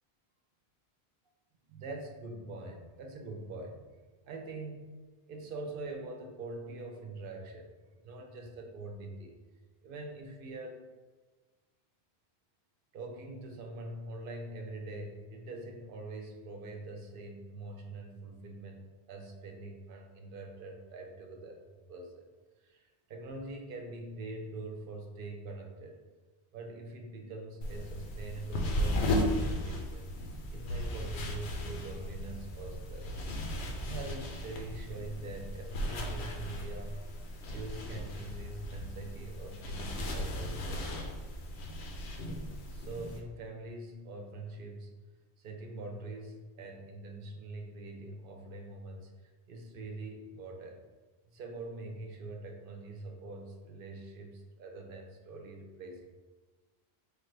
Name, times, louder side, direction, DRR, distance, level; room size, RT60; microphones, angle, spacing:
voice 1, 1.6-4.0 4.3-4.9 5.3-7.7 8.0-9.4 9.8-10.8 12.9-22.3 22.6-26.0 26.5-30.1 30.5-33.2 33.8-37.0 37.5-41.0 42.7-45.0 45.4-50.8 51.3-56.2, right 2 dB, 60° right, 3 dB, 0.8 m, -44 dB
sound 1, 27.6-43.2, left 1 dB, 80° left, 0.9 m, -36 dB
5.0 x 2.5 x 3.2 m, 1.3 s
omnidirectional pair, 1.1 m